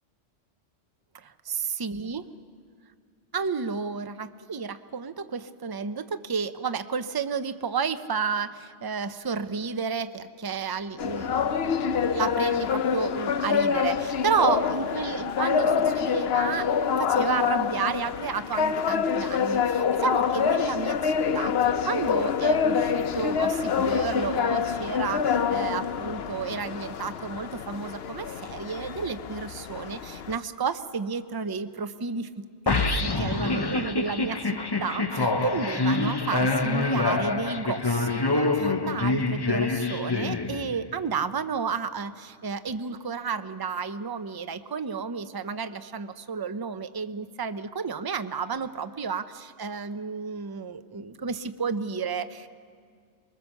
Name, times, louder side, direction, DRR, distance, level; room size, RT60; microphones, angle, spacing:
voice 1, 1.1-2.3 3.3-11.8 12.1-16.7 17.0-52.5, right 5 dB, 25° right, 10 dB, 0.5 m, -32 dB
sound 1, 11.0-30.4, left 6 dB, 60° left, 0.9 m, -26 dB
sound 2, 32.7-40.9, left 3 dB, 25° left, 0.6 m, -26 dB
24.5 x 22.0 x 7.1 m, 2.2 s
omnidirectional pair, 1.3 m